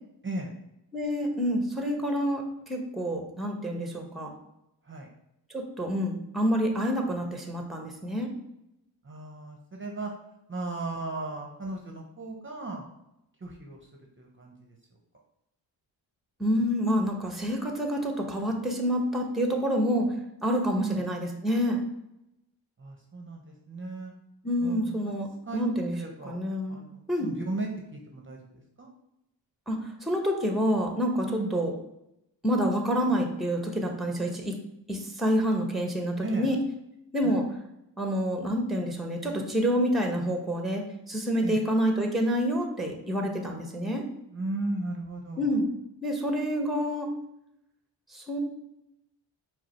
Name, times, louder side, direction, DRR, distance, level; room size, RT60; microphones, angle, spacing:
voice 1, 0.9-4.3 5.5-8.3 16.4-20.1 20.4-21.8 24.4-25.3 25.5-26.0 26.3-26.8 27.1-27.3 29.7-31.7 32.4-34.5 34.9-36.6 37.1-37.4 38.0-44.0 45.4-45.6 46.0-47.1 48.1-48.4, equal, ahead, 3 dB, 0.8 m, -28 dB
voice 2, 9.0-10.1 10.5-12.9 13.4-13.9 14.2-14.8 20.7-21.0 22.8-24.1 24.6-25.1 25.5-25.6 25.9-26.4 26.7-28.9 31.2-31.5 36.2-36.5 37.2-37.4 41.4-41.6 44.3-45.6, right 2 dB, 25° right, 0 dB, 0.8 m, -36 dB
4.8 x 2.0 x 4.3 m, 0.85 s
cardioid pair, 55°, 45 cm